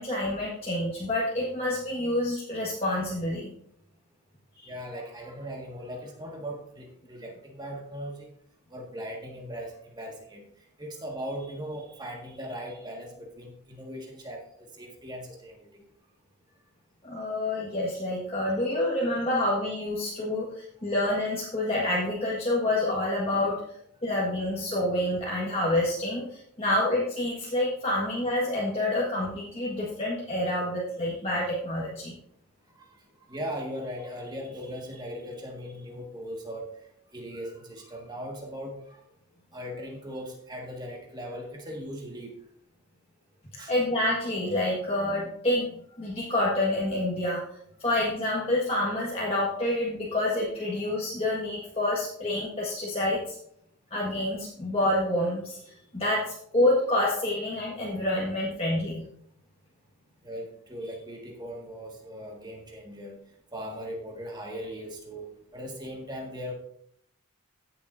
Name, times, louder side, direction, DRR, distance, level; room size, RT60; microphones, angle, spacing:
voice 1, 0.0-3.5 4.6-4.7 17.0-23.6 24.0-32.2 43.7-47.4 47.8-53.3 53.9-59.0, left 1 dB, 25° left, -6 dB, 1.6 m, -28 dB
voice 2, 4.6-8.3 8.7-10.4 10.8-15.8 32.7-32.8 33.3-36.8 37.1-39.0 39.5-42.3 43.6-43.7 60.2-63.2 63.5-66.5, equal, 20° right, 0 dB, 1.7 m, -39 dB
16.0 x 6.8 x 2.6 m, 0.69 s
head